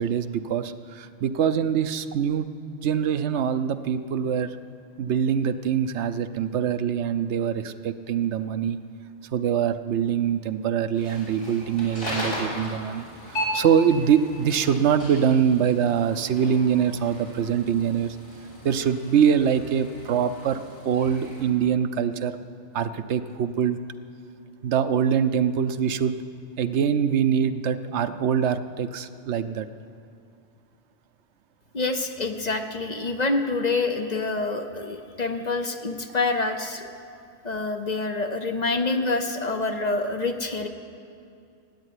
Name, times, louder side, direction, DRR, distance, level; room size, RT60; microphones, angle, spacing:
voice 1, 0.0-2.5 2.8-4.5 5.0-8.8 9.3-18.2 18.6-20.6 20.8-22.4 22.7-23.8 24.6-26.2 26.6-29.7, right 8 dB, 75° right, 11 dB, 0.9 m, -24 dB
sound 1, 10.9-21.4, equal, 90° left, 5.2 m, -37 dB
voice 2, 31.7-36.9 37.4-40.7, left 3 dB, 40° left, 6 dB, 0.8 m, -27 dB
15.0 x 8.8 x 9.8 m, 2.5 s
omnidirectional pair, 1.2 m